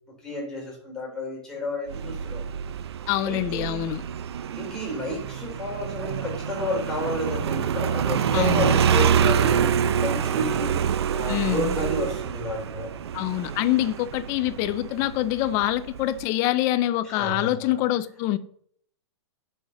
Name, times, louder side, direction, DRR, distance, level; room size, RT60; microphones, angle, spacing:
voice 1, 0.2-2.5 3.3-3.9 4.6-9.7 10.0-12.9 17.0-17.8, left 1 dB, 5° left, 3.5 m, -31 dB
Motorcycle, 1.9-16.2, right 8 dB, 60° right, 0.7 m, -26 dB
voice 2, 3.1-4.0 8.3-8.8 11.3-11.7 13.1-18.4, left 14 dB, 20° left, 0.5 m, -25 dB
9.6 x 6.5 x 6.8 m
hypercardioid pair, 170°, 15 cm